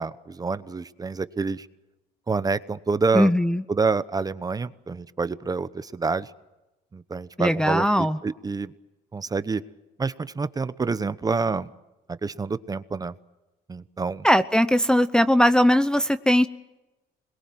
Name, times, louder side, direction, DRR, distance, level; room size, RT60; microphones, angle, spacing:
voice 1, 0.0-1.7 2.3-3.3 3.7-6.3 6.9-8.7 9.1-9.6 10.0-11.7 12.1-13.1 13.7-14.3, right 4 dB, 20° right, 14 dB, 1.0 m, -27 dB
voice 2, 3.1-3.6 7.4-8.2 14.2-16.5, equal, 5° left, 9 dB, 0.8 m, -19 dB
26.5 x 21.5 x 7.7 m, 1.0 s
cardioid pair, 110°, 17 cm